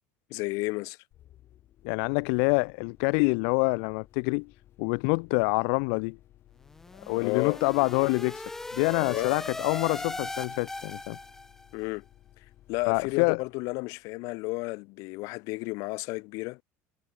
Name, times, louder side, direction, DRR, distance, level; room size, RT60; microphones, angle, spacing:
voice 1, 0.3-1.0 7.2-7.6 9.1-9.3 11.7-12.0 12.7-16.6, left 25 dB, 65° left, 2.3 m, -32 dB
sound 1, 1.1-14.6, left 13 dB, 40° left, 4.7 m, -58 dB
voice 2, 1.8-4.5 4.8-6.2 7.1-8.4 8.7-11.2 12.9-13.4, left 40 dB or more, 80° left, 0.5 m, -26 dB
sound 2, 6.7-11.7, left 2 dB, 5° left, 1.0 m, -38 dB
cardioid pair, 170°, 6 cm